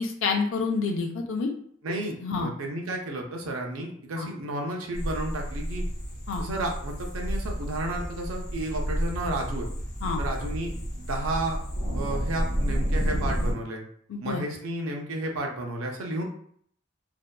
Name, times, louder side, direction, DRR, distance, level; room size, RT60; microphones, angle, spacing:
voice 1, 0.0-1.5 2.2-2.5 4.2-4.3 6.3-6.5 10.0-10.2 14.1-14.4, left 4 dB, 70° left, 2 dB, 0.4 m, -28 dB
voice 2, 1.8-5.8 6.4-9.7 10.2-11.6 11.9-13.8 14.2-16.2, right 1 dB, 90° right, 1 dB, 0.5 m, -32 dB
sound 1, 4.9-13.5, equal, 35° left, 1.0 m, -30 dB
2.6 x 2.2 x 2.2 m, 0.62 s
head